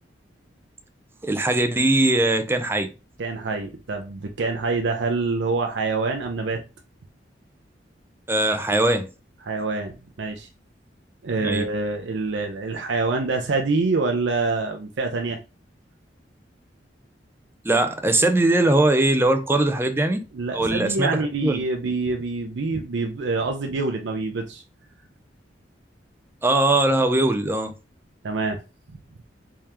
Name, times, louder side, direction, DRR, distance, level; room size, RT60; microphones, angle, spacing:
voice 1, 1.2-2.9 8.3-9.1 11.4-11.6 17.6-20.2 20.5-21.6 26.4-27.7, right 2 dB, 15° right, 0.5 m, -20 dB
voice 2, 3.2-6.6 9.4-10.5 11.2-15.4 20.3-24.6 28.2-28.6, right 3 dB, 75° right, 0.5 m, -26 dB
3.6 x 3.3 x 2.9 m
head